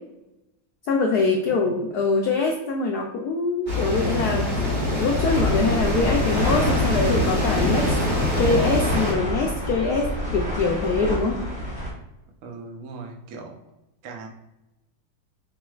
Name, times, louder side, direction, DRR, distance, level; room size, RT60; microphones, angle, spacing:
voice 1, 0.9-4.5 4.9-7.9 8.4-11.4, left 3 dB, 90° left, 1 dB, 0.8 m, -23 dB
voice 2, 1.4-1.9 12.4-13.6 14.0-14.3, right 4 dB, 75° right, 1 dB, 0.7 m, -39 dB
sound 1, 3.7-9.1, left 1 dB, 30° right, 1.2 m, -24 dB
sound 2, 5.2-11.9, equal, 5° right, 0.6 m, -29 dB
sound 3, 5.4-5.7 6.0-7.6 8.1-9.1 9.4-9.8 10.3-11.2, left 2 dB, 55° left, 0.7 m, -35 dB
4.8 x 3.7 x 2.4 m, 0.94 s
omnidirectional pair, 2.2 m